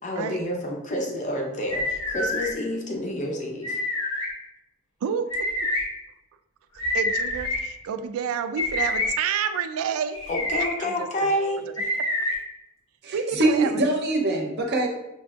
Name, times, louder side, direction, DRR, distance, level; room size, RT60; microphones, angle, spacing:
voice 1, 0.0-3.8 10.3-11.6, left 1 dB, 35° left, 0 dB, 0.6 m, -28 dB
sound 1, 1.7-2.5 3.6-4.3 5.3-5.8 6.8-7.6 8.6-9.1 10.1-10.7 11.8-12.3, left 1 dB, 75° left, 1.1 m, -26 dB
voice 2, 5.0-5.5 6.9-10.2 10.8-11.3 13.1-13.7, right 7 dB, 90° right, 11 dB, 0.3 m, -29 dB
voice 3, 13.0-14.9, right 2 dB, 50° right, 2 dB, 0.6 m, -23 dB
5.2 x 2.5 x 2.4 m, 0.91 s
head